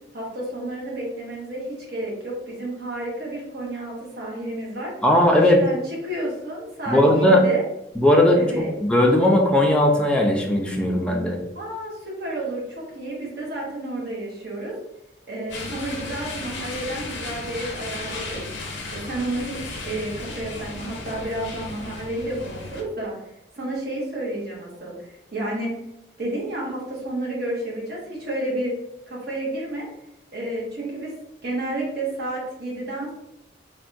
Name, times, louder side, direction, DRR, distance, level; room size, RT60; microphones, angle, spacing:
voice 1, 0.1-4.9 5.4-7.6 8.4-8.7 11.5-14.7 15.3-18.4 18.9-23.2 23.6-25.7 26.2-28.7 29.1-29.9 30.3-31.1 31.4-33.1, right 1 dB, 60° right, -3 dB, 1.0 m, -31 dB
voice 2, 5.0-5.6 6.9-7.4 8.0-11.4, left 1 dB, 5° left, 0 dB, 0.4 m, -18 dB
sound 1, 15.5-22.8, left 3 dB, 70° left, 0.6 m, -35 dB
3.4 x 2.2 x 2.6 m, 0.84 s
head